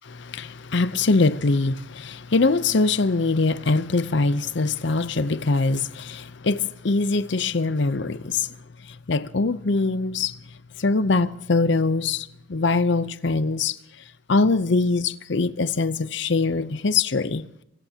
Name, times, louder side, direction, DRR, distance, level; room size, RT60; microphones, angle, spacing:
voice 1, 0.2-8.5 8.9-10.4 10.8-13.8 14.3-17.5, left 3 dB, 60° left, 0.7 m, -23 dB
27.5 x 17.0 x 2.9 m
head